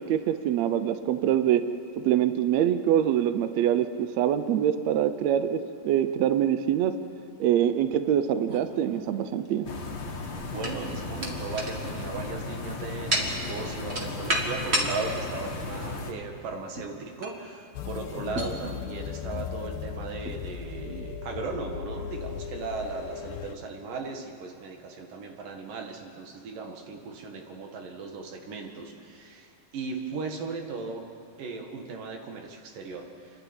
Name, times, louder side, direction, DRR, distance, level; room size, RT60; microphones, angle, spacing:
voice 1, 0.0-1.6 2.0-7.0 7.4-9.7, right 10 dB, 70° right, 11 dB, 1.8 m, -24 dB
sound 1, 8.5-9.5 10.2-15.0 15.5-15.6 16.8-17.0 17.2-17.4 18.3-18.6 19.4-19.5 20.2-20.4, right 1 dB, 25° right, 1.5 m, -31 dB
sound 2, 9.6-16.1, left 3 dB, 40° left, 2.1 m, -36 dB
voice 2, 10.3-31.0 31.4-33.4, right 4 dB, 85° right, 2 dB, 3.6 m, -37 dB
sound 3, 17.7-23.5, left 7 dB, 90° left, 2.4 m, -37 dB
28.5 x 11.5 x 8.9 m, 2.5 s
omnidirectional pair, 3.7 m